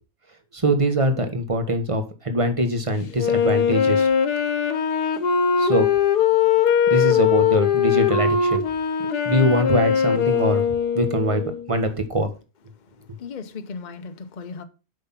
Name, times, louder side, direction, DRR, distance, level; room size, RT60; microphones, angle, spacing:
voice 1, 0.5-4.1 5.6-5.9 6.9-8.6 9.2-10.6 10.9-11.4 11.7-12.3, right 1 dB, 20° right, 1.3 m, -22 dB
Wind instrument woodwind instrument, 3.1-11.7, left 7 dB, 75° left, 1.6 m, -21 dB
voice 2, 13.0-14.6, left 5 dB, 35° left, 0.8 m, -36 dB
8.1 x 6.0 x 5.8 m
omnidirectional pair, 1.8 m